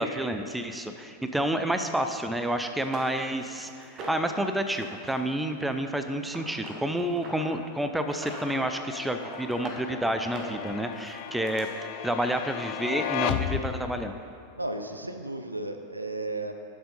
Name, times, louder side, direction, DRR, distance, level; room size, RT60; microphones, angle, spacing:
voice 1, 0.0-11.7 12.0-14.1, right 1 dB, 5° right, 7 dB, 0.5 m, -29 dB
sound 1, 2.2-2.3 2.8-4.3 4.7-5.1 5.4-7.5 8.0-8.6 9.0-9.8 10.2-11.6 12.6-12.7 13.1-13.2, right 2 dB, 35° right, 1.5 m, -43 dB
sound 2, 8.3-14.2, left 11 dB, 45° left, 0.4 m, -35 dB
voice 2, 14.6-16.5, right 2 dB, 85° right, 6 dB, 0.5 m, -34 dB
7.6 x 6.8 x 5.3 m, 2.5 s
figure-of-eight pair, 90°, 0 cm